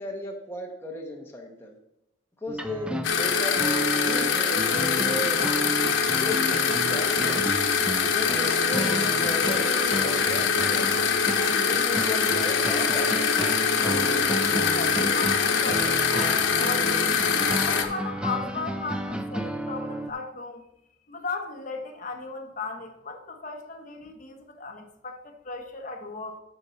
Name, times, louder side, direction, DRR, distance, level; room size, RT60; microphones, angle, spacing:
voice 1, 0.0-1.8 2.4-3.6 4.0-5.4 6.1-7.5 8.1-10.9 11.5-13.3, left 1 dB, 10° left, 0 dB, 1.2 m, -35 dB
sound 1, 2.5-20.1, right 1 dB, 5° right, 0.4 m, -33 dB
sound 2, 3.0-17.8, left 6 dB, 85° left, 0.9 m, -24 dB
voice 2, 14.6-17.1 17.6-20.6 21.1-26.4, left 4 dB, 40° left, 2 dB, 1.2 m, -36 dB
9.9 x 6.3 x 4.1 m, 0.83 s
head